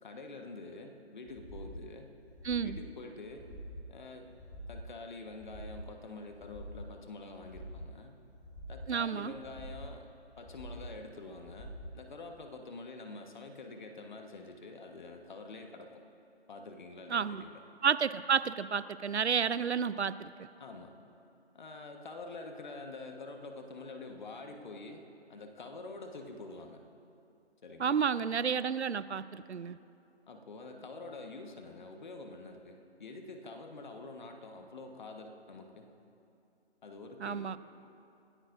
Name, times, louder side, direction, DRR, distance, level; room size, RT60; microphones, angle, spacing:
voice 1, 0.0-2.2 2.6-3.5 3.9-4.3 4.7-8.2 8.7-10.0 10.4-16.0 16.5-17.6 20.6-20.9 21.5-25.0 25.3-26.8 27.6-28.0 30.3-35.9 36.8-37.5, left 3 dB, 45° left, 4 dB, 1.5 m, -46 dB
sound 1, 1.3-1.8 2.2-2.8 3.2-3.8 4.3-4.8 5.3-5.9 6.3-6.9 7.3-7.9 8.3-8.9 9.3-9.9 10.3-10.9 11.3-11.9 12.3-12.4, equal, 20° left, 1.9 m, -46 dB
voice 2, 2.4-2.8 8.9-9.3 17.1-17.4 17.8-20.5 27.8-29.8 37.2-37.6, right 6 dB, 75° right, 16 dB, 0.6 m, -31 dB
28.0 x 13.5 x 2.7 m, 2.7 s
figure-of-eight pair, 155°, 33 cm